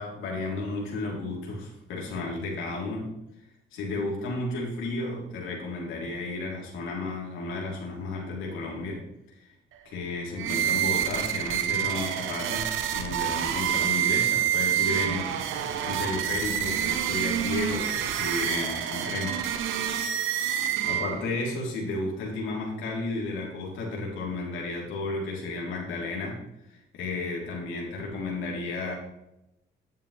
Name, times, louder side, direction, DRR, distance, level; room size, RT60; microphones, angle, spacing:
voice 1, 0.0-3.1 3.7-9.0 9.4-9.5 9.8-12.6 12.9-19.4 20.4-26.4 26.7-28.9, left 2 dB, 90° left, -2 dB, 3.3 m, -33 dB
sound 1, 10.4-21.4, right 10 dB, 90° right, 1.0 m, -27 dB
11.0 x 7.4 x 3.3 m, 0.85 s
cardioid pair, 90°, 20 cm